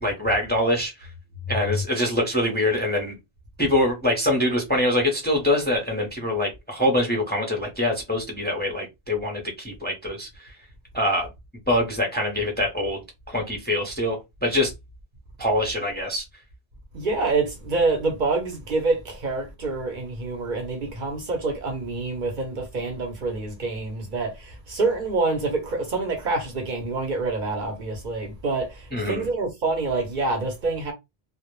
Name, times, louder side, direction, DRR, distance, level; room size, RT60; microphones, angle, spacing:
voice 1, 0.0-0.9 1.5-3.2 3.6-10.5 10.9-11.3 11.7-13.0 13.3-14.7 15.4-16.2 28.9-29.3, left 1 dB, 10° left, 0.6 m, -24 dB
voice 2, 16.9-30.9, right 3 dB, 55° right, 0.8 m, -26 dB
2.1 x 2.0 x 3.0 m
omnidirectional pair, 1.0 m